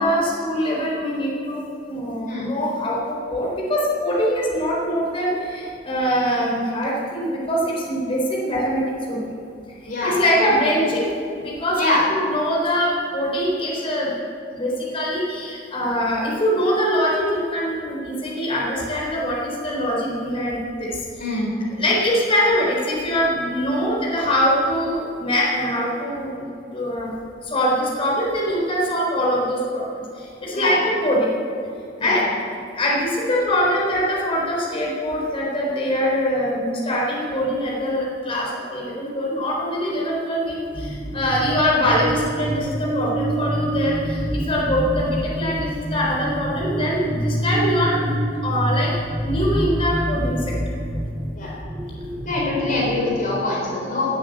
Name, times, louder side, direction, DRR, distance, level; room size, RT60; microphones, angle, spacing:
voice 1, 0.0-9.3 9.8-11.1 11.4-14.2 14.5-20.9 21.2-21.4 21.8-27.1 27.4-29.8 30.2-31.3 32.0-32.2 32.7-48.1 48.4-48.9 49.2-50.4, equal, 30° left, -4 dB, 4.1 m, -23 dB
voice 2, 9.9-10.2 11.8-12.0 21.2-21.5 30.5-30.7 32.0-32.2 51.4-51.5 52.2-54.2, left 2 dB, 50° left, -4 dB, 4.0 m, -24 dB
sound 1, 40.7-53.0, right 1 dB, 10° right, 1.2 m, -26 dB
18.0 x 8.6 x 8.0 m, 2.5 s
head